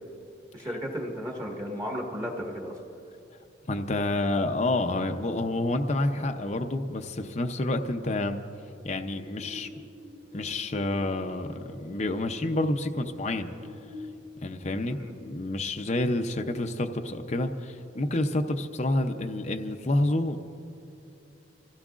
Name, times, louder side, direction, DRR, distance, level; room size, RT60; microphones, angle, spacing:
voice 1, 0.5-2.8 14.9-15.1, equal, 20° right, -1 dB, 1.6 m, -34 dB
voice 2, 3.7-8.4 8.8-9.7 10.3-13.5 14.4-20.4, left 2 dB, 35° left, 5 dB, 0.6 m, -28 dB
sound 1, 9.1-14.1, left 2 dB, 40° right, 2.9 m, -46 dB
27.5 x 16.0 x 2.5 m, 2.7 s
head